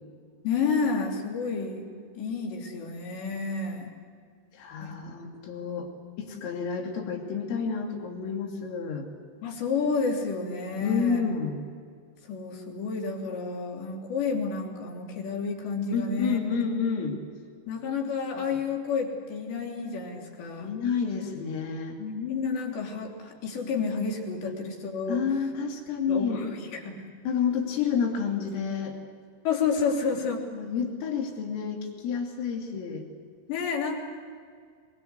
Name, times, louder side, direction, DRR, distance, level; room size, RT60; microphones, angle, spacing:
voice 1, 0.4-1.9 2.2-3.9 4.8-4.9 9.4-11.3 12.3-16.6 17.7-20.7 22.0-25.2 26.1-27.1 29.5-30.5 33.5-34.0, left 5 dB, 60° left, 0 dB, 5.3 m, -30 dB
voice 2, 4.5-5.9 6.2-9.1 10.8-11.6 15.9-17.2 18.4-18.5 20.6-22.0 25.1-26.5 27.3-29.0 30.5-33.1, left 6 dB, 85° left, 2 dB, 5.4 m, -29 dB
24.5 x 23.5 x 8.2 m, 2.1 s
omnidirectional pair, 5.8 m